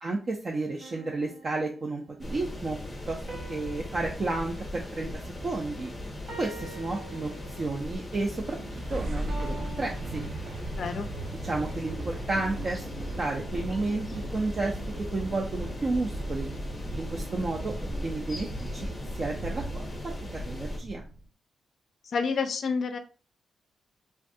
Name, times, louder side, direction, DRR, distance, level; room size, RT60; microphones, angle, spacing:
voice 1, 0.0-2.8 3.1-3.2 3.5-5.1 5.4-5.9 6.4-8.6 8.9-10.2 11.4-12.9 13.2-14.1 14.3-14.8 15.1-16.5 16.9-17.7 18.0-18.9 19.1-19.9 20.3-21.1, right 3 dB, 35° right, 0 dB, 0.4 m, -31 dB
sound 1, 0.8-2.3 3.3-5.8 6.3-7.9 9.3-11.0, right 2 dB, 55° right, 0.8 m, -47 dB
sound 2, 2.2-20.8, left 1 dB, 15° left, 0.7 m, -39 dB
sound 3, 8.2-21.2, right 1 dB, 85° right, 0.9 m, -37 dB
voice 2, 10.7-11.1 22.1-23.0, left 5 dB, 55° left, 7 dB, 0.4 m, -28 dB
3.3 x 2.2 x 2.6 m, 0.37 s
wide cardioid pair, 160°, 0 cm